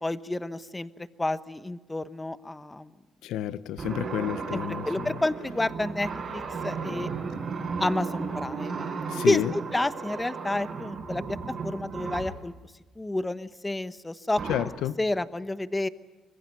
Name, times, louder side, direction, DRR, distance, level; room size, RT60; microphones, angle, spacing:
voice 1, 0.0-2.9 4.5-7.1 7.8-8.9 9.3-11.4 11.6-12.5 13.0-14.4 15.0-15.9, left 2 dB, 15° left, 1.1 m, -30 dB
voice 2, 3.2-5.1 9.1-9.5 14.5-15.0, left 11 dB, 90° left, 0.8 m, -30 dB
sound 1, 3.8-12.4 14.4-14.6, right 5 dB, 50° right, 5.0 m, -35 dB
25.5 x 21.5 x 9.2 m
cardioid pair, 90°, 0 cm